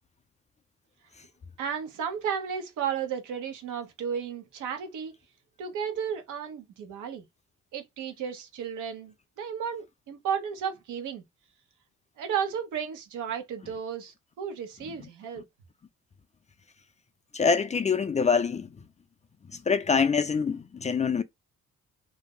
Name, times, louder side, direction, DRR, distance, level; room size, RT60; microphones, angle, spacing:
voice 1, 1.6-5.1 5.6-7.2 7.7-11.2 12.2-15.4, right 7 dB, 85° right, 0.9 m, -33 dB
voice 2, 17.3-18.7 19.7-21.2, left 5 dB, 25° left, 0.4 m, -25 dB
2.7 x 2.0 x 3.5 m
cardioid pair, 90°, 30 cm